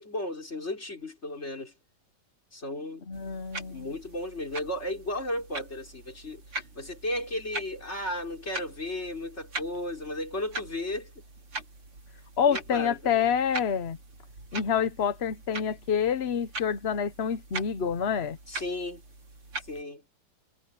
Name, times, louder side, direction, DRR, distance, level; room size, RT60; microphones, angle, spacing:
voice 1, 0.0-1.7 2.5-3.1 3.7-11.1 12.5-13.3 18.5-19.0 19.7-20.0, left 1 dB, 30° left, 5.1 m, -34 dB
voice 2, 3.1-3.9 12.4-14.0 14.5-18.4, left 7 dB, 55° left, 0.7 m, -27 dB
sound 1, 3.1-19.8, right 2 dB, 90° right, 6.1 m, -42 dB
omnidirectional pair, 2.4 m